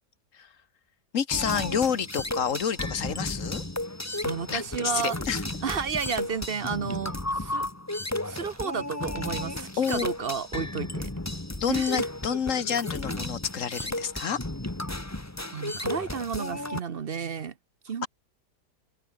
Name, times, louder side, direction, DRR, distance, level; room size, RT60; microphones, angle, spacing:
voice 1, 1.1-3.6 4.5-5.4 9.8-10.1 11.6-14.4, left 7 dB, 55° left, 1.4 m, -28 dB
sound 1, 1.3-16.8, left 1 dB, 10° left, 1.4 m, -34 dB
voice 2, 4.2-5.2 5.6-7.6 8.2-11.1 11.7-12.1 15.5-17.5 17.8-18.1, right 6 dB, 45° right, 0.9 m, -32 dB
omnidirectional pair, 1.8 m